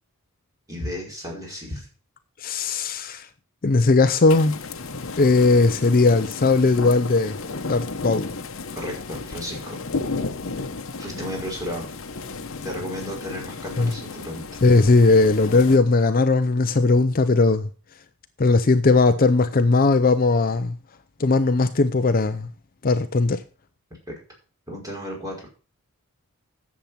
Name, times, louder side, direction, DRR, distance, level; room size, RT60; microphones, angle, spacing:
voice 1, 0.7-1.9 8.7-9.8 11.0-11.9 12.6-14.5 24.1-24.2 24.7-25.5, equal, 15° right, 5.4 m, -33 dB
voice 2, 2.4-3.3 3.6-4.6 5.2-7.4 7.6-8.3 13.8-13.9 14.6-17.7 18.4-20.8 21.2-22.5 22.8-23.4, left 3 dB, 40° left, 0.6 m, -18 dB
sound 1, 4.3-15.8, left 3 dB, 60° left, 1.0 m, -33 dB
10.5 x 7.5 x 5.7 m
head